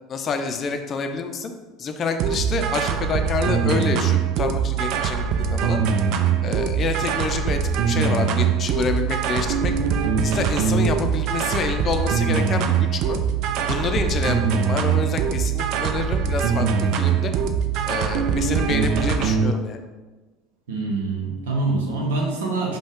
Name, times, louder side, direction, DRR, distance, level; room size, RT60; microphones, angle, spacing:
voice 1, 0.1-1.5 1.8-5.8 6.4-7.6 7.9-9.7 10.2-13.2 13.6-17.3 17.8-19.8, left 4 dB, 40° left, 7 dB, 0.5 m, -27 dB
sound 1, 2.2-19.5, right 6 dB, 60° right, 0.4 m, -22 dB
voice 2, 20.7-22.8, right 3 dB, 85° right, -1 dB, 0.9 m, -25 dB
5.3 x 2.3 x 3.6 m, 1.2 s
hypercardioid pair, 85°, 0 cm